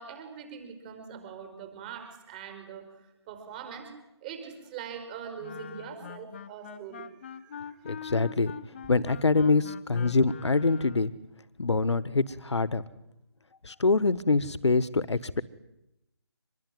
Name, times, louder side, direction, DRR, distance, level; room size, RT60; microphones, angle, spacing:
voice 1, 0.0-3.9 4.2-7.9, right 7 dB, 20° right, 7 dB, 5.2 m, -43 dB
Wind instrument woodwind instrument, 5.4-11.2, left 8 dB, 25° left, 0.9 m, -43 dB
voice 2, 7.8-8.5 8.9-11.1 11.6-12.8 13.6-15.4, left 3 dB, 80° left, 16 dB, 1.4 m, -25 dB
25.5 x 20.5 x 9.3 m, 0.88 s
figure-of-eight pair, 165°, 14 cm